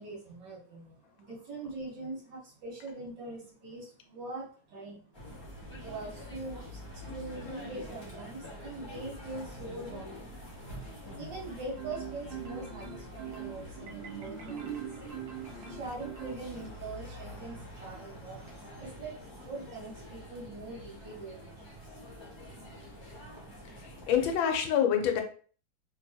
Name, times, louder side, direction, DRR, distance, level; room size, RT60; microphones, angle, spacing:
voice 1, 0.0-5.3 5.8-10.3 11.1-15.0 15.7-19.1 19.4-21.9, right 2 dB, 65° right, -2 dB, 1.9 m, -43 dB
sound 1, 5.1-24.4, left 1 dB, 20° left, 0.8 m, -46 dB
Marimba xylophone, 11.8-16.9, right 9 dB, 85° right, 1.4 m, -42 dB
voice 2, 23.8-25.2, left 8 dB, 90° left, 5 dB, 1.5 m, -26 dB
3.7 x 2.9 x 2.7 m, 0.41 s
omnidirectional pair, 2.1 m